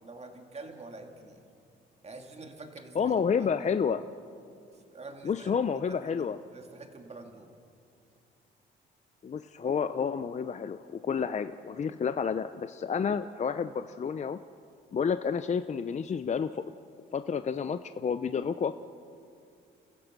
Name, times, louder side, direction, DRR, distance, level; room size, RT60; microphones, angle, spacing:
voice 1, 0.0-1.4 2.0-3.7 4.9-5.5 6.0-6.3 6.5-7.5, right 3 dB, 35° right, 4 dB, 2.6 m, -46 dB
voice 2, 2.9-4.0 5.2-6.4 9.2-14.4 14.9-16.6 17.1-18.8, left 6 dB, 35° left, 11 dB, 0.6 m, -30 dB
29.0 x 15.0 x 6.1 m, 2.4 s
cardioid pair, 90°, 20 cm